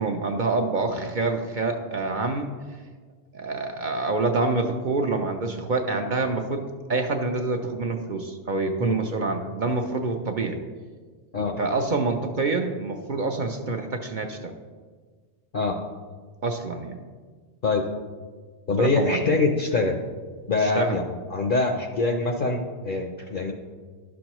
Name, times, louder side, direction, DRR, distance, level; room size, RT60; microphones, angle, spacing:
voice 1, 0.0-2.5 3.3-10.6 11.6-14.5 16.4-17.0 18.8-19.2 20.6-21.0, right 3 dB, 55° right, 4 dB, 0.6 m, -27 dB
voice 2, 18.7-20.0 20.5-21.0 21.3-23.5, left 3 dB, 55° left, 3 dB, 0.7 m, -24 dB
11.5 x 6.2 x 3.0 m, 1.5 s
omnidirectional pair, 1.2 m